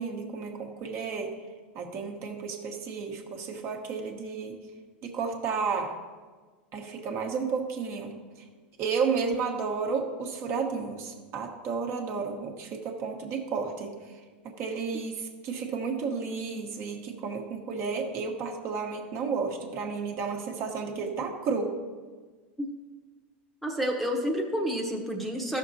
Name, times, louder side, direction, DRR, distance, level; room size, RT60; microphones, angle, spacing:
voice 1, 0.0-1.3 1.7-4.6 5.0-5.9 6.7-8.1 8.8-13.9 14.4-21.7, right 5 dB, 45° right, 2 dB, 1.2 m, -32 dB
voice 2, 23.6-25.6, equal, ahead, 1 dB, 0.9 m, -29 dB
12.5 x 6.4 x 2.7 m, 1.4 s
hypercardioid pair, 110°, 6 cm